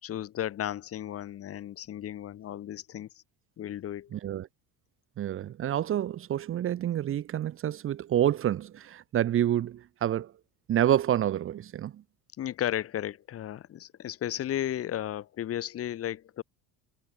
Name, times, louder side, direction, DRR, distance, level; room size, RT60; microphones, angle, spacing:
voice 1, 0.0-3.1 3.6-4.1 12.4-16.4, left 11 dB, 40° left, 2.8 m, -34 dB
voice 2, 4.1-4.5 5.2-10.3 10.7-12.0, right 11 dB, 35° right, 1.3 m, -28 dB
cardioid pair, 140°, 35 cm